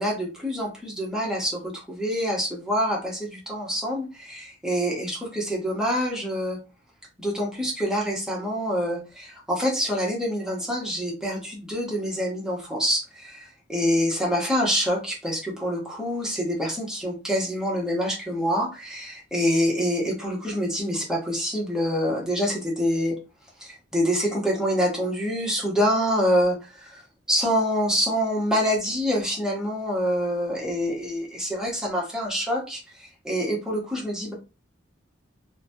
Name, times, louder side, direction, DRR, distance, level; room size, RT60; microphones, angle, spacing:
voice 1, 0.0-6.6 7.2-23.2 23.6-27.0 27.3-34.3, equal, 5° right, -3 dB, 0.9 m, -26 dB
2.8 x 2.2 x 2.7 m, 0.30 s
head